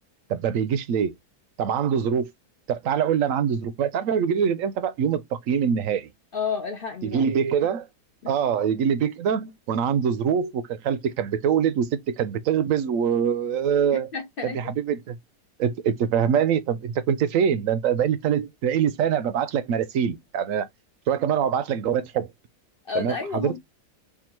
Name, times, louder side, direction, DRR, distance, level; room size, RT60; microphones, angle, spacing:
voice 1, 0.3-1.1 1.6-2.3 2.7-6.1 7.0-7.9 8.3-14.1 14.4-15.2 15.6-20.7 21.1-22.3 22.9-23.5, right 8 dB, 65° right, 0.9 m, -24 dB
voice 2, 6.3-7.2 8.2-8.3 13.9-14.7 22.8-23.6, left 5 dB, 60° left, 0.5 m, -31 dB
3.6 x 2.3 x 4.4 m
omnidirectional pair, 1.7 m